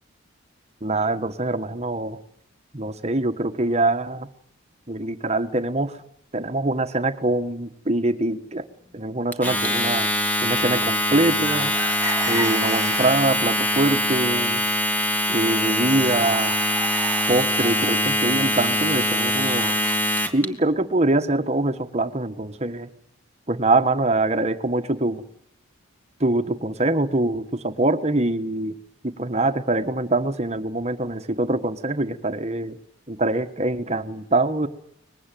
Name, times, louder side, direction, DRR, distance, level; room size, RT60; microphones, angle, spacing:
voice 1, 0.8-2.2 2.7-4.3 4.9-6.0 6.3-8.6 8.9-10.1 10.4-11.7 12.3-14.6 15.3-16.5 17.3-19.7 20.3-22.9 23.5-25.2 26.2-28.8 29.0-32.8 33.1-34.7, right 2 dB, 30° right, 9 dB, 1.4 m, -24 dB
Domestic sounds home sounds, 9.3-20.5, left 1 dB, 10° left, 2.0 m, -23 dB
sound 1, 11.4-13.4 13.9-14.5 14.9-15.0 15.3-19.9, right 2 dB, 15° right, 1.6 m, -34 dB
23.5 x 21.0 x 9.2 m, 0.71 s
head